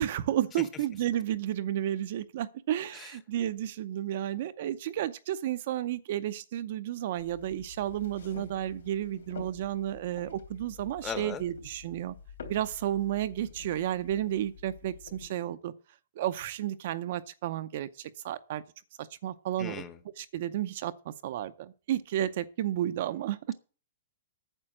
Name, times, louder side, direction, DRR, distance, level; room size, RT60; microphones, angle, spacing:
voice 1, 0.0-12.1 12.5-15.7 16.2-18.6 19.0-19.8 20.2-23.6, right 12 dB, 45° right, 0.6 m, -32 dB
sound 1, 7.2-15.3, left 5 dB, 90° left, 3.3 m, -49 dB
voice 2, 11.0-11.4 19.6-20.0, left 7 dB, 15° left, 0.8 m, -37 dB
9.0 x 6.9 x 7.5 m
hypercardioid pair, 175°, 0 cm